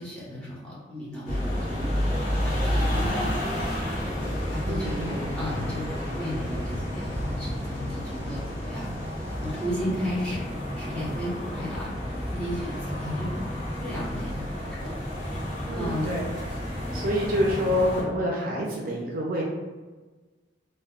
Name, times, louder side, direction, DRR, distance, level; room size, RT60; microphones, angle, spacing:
voice 1, 0.0-3.9 4.5-5.8 6.1-8.9 9.3-11.9 12.3-13.3 13.8-14.9 15.7-16.2, left 1 dB, 5° left, -8 dB, 0.8 m, -34 dB
sound 1, 1.3-18.0, equal, 40° left, 0.8 m, -30 dB
sound 2, 4.2-9.7, equal, 75° left, 0.7 m, -46 dB
voice 2, 4.7-5.2 15.7-16.2 16.9-19.4, equal, 50° right, -2 dB, 0.4 m, -27 dB
2.2 x 2.1 x 3.5 m, 1.3 s
head